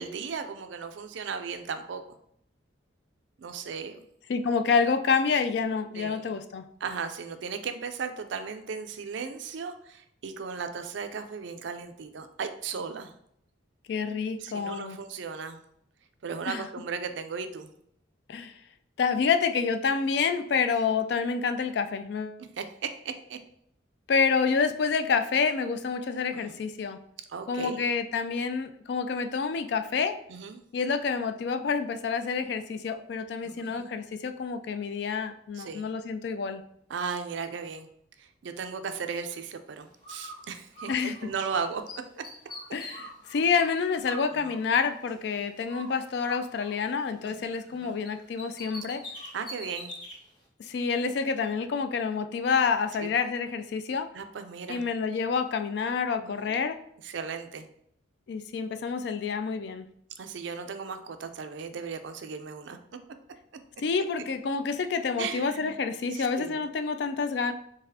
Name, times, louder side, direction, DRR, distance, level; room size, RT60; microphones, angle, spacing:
voice 1, 0.0-2.2 3.4-4.0 5.9-6.3 6.8-13.1 14.4-15.6 16.2-17.7 22.6-23.4 26.3-26.6 27.3-27.8 30.3-30.6 33.4-33.9 35.6-35.8 36.9-37.9 38.2-41.8 44.3-44.5 47.2-47.5 47.8-48.0 49.3-49.9 53.0-53.1 54.1-54.8 56.2-56.6 57.0-57.7 60.2-62.8 65.2-65.7 66.1-66.6, right 5 dB, 65° right, 8 dB, 0.4 m, -36 dB
voice 2, 4.3-6.6 13.9-15.0 16.5-16.7 18.3-18.5 19.0-22.4 24.1-27.0 27.5-30.1 30.7-36.6 40.9-41.2 42.7-49.0 50.6-54.1 54.7-56.8 58.3-59.9 63.8-67.5, left 5 dB, 55° left, 9 dB, 0.3 m, -28 dB
Bird, 40.0-41.6 41.9-45.3 45.7-47.8 48.0-50.2, equal, 20° left, 1.2 m, -45 dB
3.9 x 3.5 x 2.7 m, 0.69 s
head